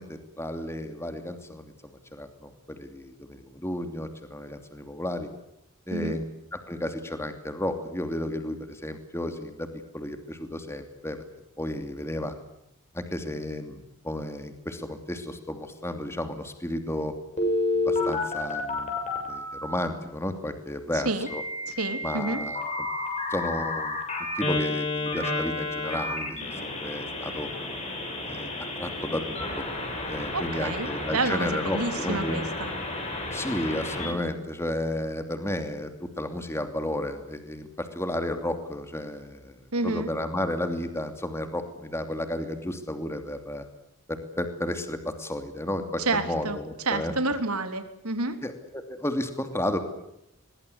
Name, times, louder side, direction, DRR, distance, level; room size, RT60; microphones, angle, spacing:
voice 1, 0.0-5.3 5.9-6.2 6.7-11.2 11.6-12.3 12.9-17.1 17.7-19.0 19.3-21.4 22.0-22.6 23.3-24.0 24.3-27.5 28.3-29.6 30.1-32.4 33.3-39.6 39.8-43.6 44.1-47.1 48.4-49.8, left 1 dB, 10° left, 7 dB, 2.8 m, -32 dB
Telephone, 17.4-19.9 21.3-34.1, left 2 dB, 30° left, 7.2 m, -31 dB
voice 2, 20.9-21.3 21.7-22.4 30.3-32.7 39.7-40.1 46.0-46.6 46.8-48.4, right 3 dB, 85° right, 8 dB, 3.5 m, -29 dB
23.0 x 22.0 x 9.8 m, 0.82 s
head